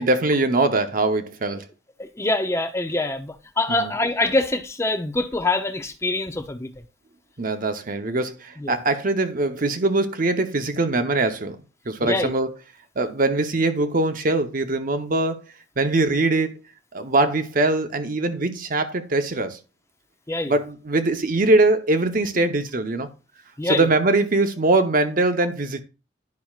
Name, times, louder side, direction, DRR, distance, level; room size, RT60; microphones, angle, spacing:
voice 1, 0.0-1.7 3.8-3.9 7.4-11.6 11.9-12.5 13.0-15.5 15.8-16.5 16.9-19.6 20.5-23.1 23.6-25.8, right 2 dB, 45° right, 0.8 m, -22 dB
voice 2, 2.0-6.7 8.6-8.8 12.0-12.3 20.3-20.5 23.6-23.9, left 2 dB, 15° left, 0.6 m, -25 dB
10.5 x 5.7 x 2.4 m
head